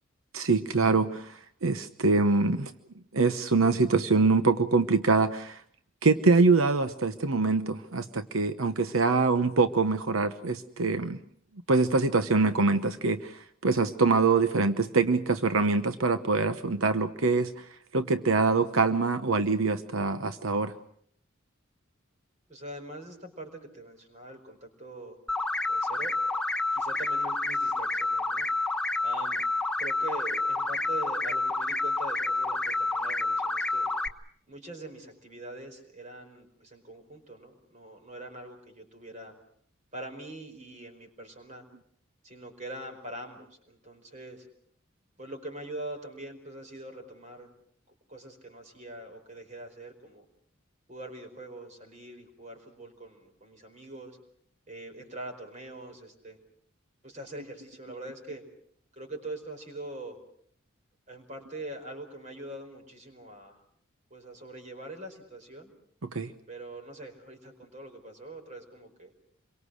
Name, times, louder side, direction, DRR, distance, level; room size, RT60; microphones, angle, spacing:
voice 1, 0.3-2.7 3.1-5.6 6.0-11.2 11.7-20.7 66.0-66.3, right 3 dB, 85° right, 10 dB, 1.0 m, -24 dB
voice 2, 22.5-25.2 25.7-26.2 26.7-28.5 29.0-29.4 29.8-33.9 34.5-39.3 39.9-41.6 42.2-44.5 45.2-47.5 48.1-50.2 50.9-54.2 54.7-56.4 57.0-58.4 58.9-60.2 61.1-63.6 64.1-65.7 66.5-69.1, right 1 dB, 35° right, 5 dB, 4.9 m, -43 dB
sound 1, 25.3-34.1, left 2 dB, 5° left, 1.0 m, -29 dB
27.0 x 23.5 x 6.4 m, 0.63 s
head